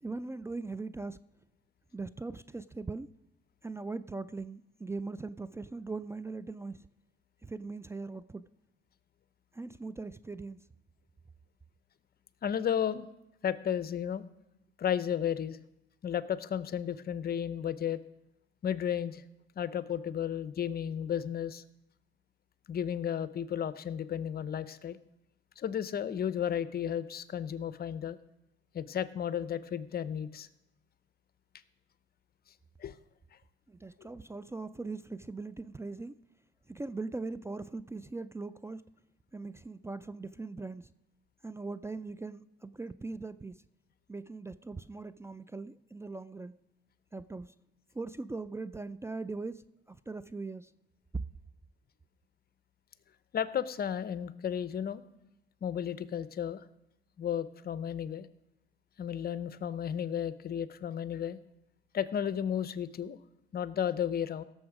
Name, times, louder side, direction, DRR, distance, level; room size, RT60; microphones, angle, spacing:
voice 1, 0.0-1.2 1.9-3.1 3.6-6.9 7.4-8.4 9.5-10.6 33.7-36.1 36.7-38.8 39.3-40.9 41.4-43.6 44.1-46.6 47.1-47.5 47.9-50.7, right 3 dB, 15° right, 16 dB, 0.3 m, -40 dB
voice 2, 12.4-13.1 13.4-14.2 14.8-15.6 16.0-18.0 18.6-19.2 19.6-21.6 22.7-25.0 25.6-28.2 28.7-30.5 32.8-32.9 34.0-34.1 53.3-55.0 55.6-56.6 57.2-58.3 59.0-61.4 61.9-63.2 63.5-64.4, left 9 dB, 50° left, 15 dB, 0.7 m, -33 dB
17.0 x 7.2 x 4.9 m, 0.89 s
cardioid pair, 90°, 20 cm